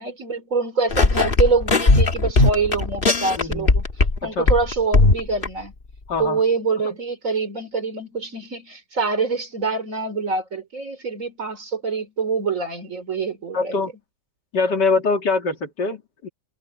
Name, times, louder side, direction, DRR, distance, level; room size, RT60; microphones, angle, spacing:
voice 1, 0.0-3.9 4.2-5.7 6.2-13.8, right 4 dB, 45° right, 3.5 m, -25 dB
sound 1, 0.9-4.2 4.5-5.5, left 3 dB, 35° left, 1.7 m, -17 dB
voice 2, 3.4-3.7 4.2-4.5 6.1-6.4 6.8-7.0 13.5-13.9 14.5-16.3, left 4 dB, 75° left, 3.3 m, -23 dB
omnidirectional pair, 1.9 m